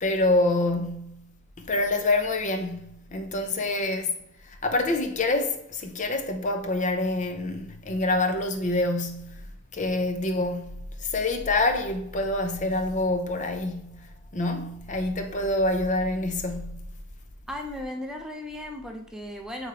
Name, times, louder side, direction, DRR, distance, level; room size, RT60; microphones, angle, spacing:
voice 1, 0.0-1.3 1.6-4.2 4.4-9.5 9.7-16.9, left 2 dB, 35° left, 0.6 m, -26 dB
voice 2, 17.5-19.7, left 1 dB, 5° right, 0.5 m, -36 dB
8.4 x 3.5 x 3.3 m
head